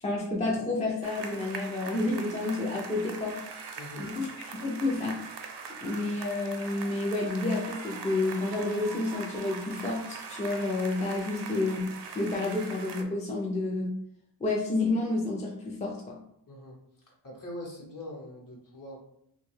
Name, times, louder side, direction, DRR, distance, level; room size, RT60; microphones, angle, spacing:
voice 1, 0.0-3.4 4.0-5.2 5.8-13.9 14.4-16.2, left 2 dB, 20° left, -2 dB, 0.3 m, -30 dB
sound 1, 1.0-13.0, right 5 dB, 70° right, 0.5 m, -42 dB
voice 2, 16.5-16.8 17.2-19.0, left 1 dB, 50° left, -2 dB, 0.9 m, -42 dB
2.7 x 2.2 x 3.1 m, 0.73 s
wide cardioid pair, 135°, 43 cm